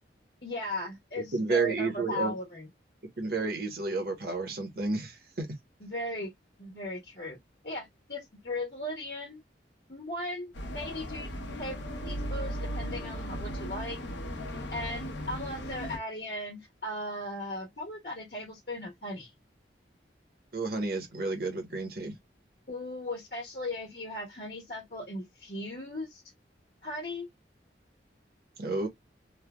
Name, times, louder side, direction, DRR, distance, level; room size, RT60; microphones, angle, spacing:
voice 1, 0.4-2.7 5.8-6.3 6.6-7.4 7.6-9.4 9.9-11.3 11.6-14.0 14.7-19.3 22.7-26.2 26.8-27.3, left 1 dB, 55° left, 1.2 m, -37 dB
voice 2, 1.3-2.4 3.2-5.5 20.5-22.1 28.6-28.9, right 3 dB, 55° right, 1.0 m, -31 dB
sound 1, 10.5-16.0, equal, 90° left, 0.8 m, -37 dB
3.2 x 2.2 x 2.2 m
head